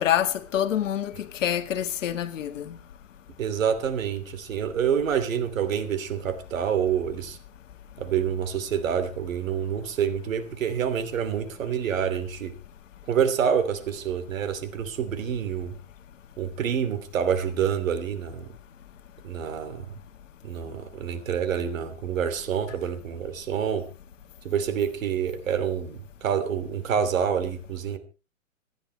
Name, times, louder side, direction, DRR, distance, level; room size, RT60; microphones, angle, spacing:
voice 1, 0.0-2.7, left 10 dB, 65° left, 1.8 m, -26 dB
voice 2, 3.4-7.4 8.0-12.5 13.1-15.7 16.4-18.5 19.2-19.9 20.4-23.8 24.4-28.0, right 8 dB, 70° right, 2.9 m, -27 dB
26.5 x 10.0 x 3.3 m
hypercardioid pair, 150°, 41 cm